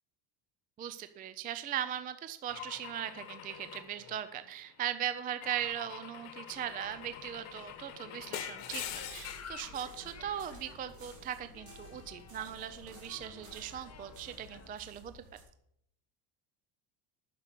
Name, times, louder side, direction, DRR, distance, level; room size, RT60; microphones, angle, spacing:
voice 1, 0.8-15.2, right 10 dB, 20° right, 11 dB, 0.3 m, -39 dB
Car / Engine / Glass, 2.5-4.7 5.4-9.6, left 11 dB, 75° left, 1.6 m, -45 dB
sound 1, 6.5-14.7, left 6 dB, 30° left, 1.3 m, -53 dB
sound 2, 8.7-15.4, right 2 dB, 35° right, 3.6 m, -55 dB
9.8 x 6.8 x 8.1 m, 0.73 s
cardioid pair, 155°, 50 cm